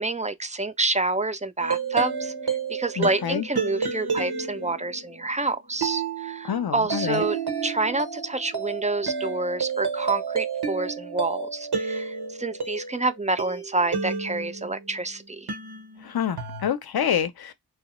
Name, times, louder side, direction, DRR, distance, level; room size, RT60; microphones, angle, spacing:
voice 1, 0.0-15.6, right 2 dB, 20° right, 0.4 m, -28 dB
sound 1, 1.6-15.0 15.5-16.7, right 5 dB, 65° right, 0.9 m, -31 dB
voice 2, 3.0-3.5 6.4-7.2 16.0-17.5, left 8 dB, 65° left, 0.5 m, -27 dB
2.9 x 2.0 x 2.9 m
wide cardioid pair, 45°, 41 cm